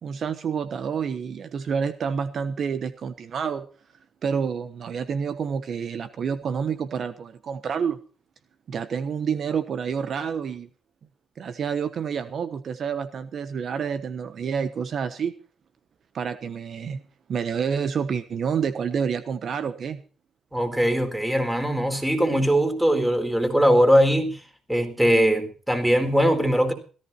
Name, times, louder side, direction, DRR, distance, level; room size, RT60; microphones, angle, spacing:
voice 1, 0.0-3.7 4.2-8.0 8.7-10.7 11.4-15.3 16.1-17.0 17.3-20.0, right 6 dB, 55° right, 1.2 m, -28 dB
voice 2, 20.5-24.4 24.7-26.7, equal, 5° right, 4.3 m, -21 dB
17.0 x 14.5 x 4.3 m
cardioid pair, 90°, 0 cm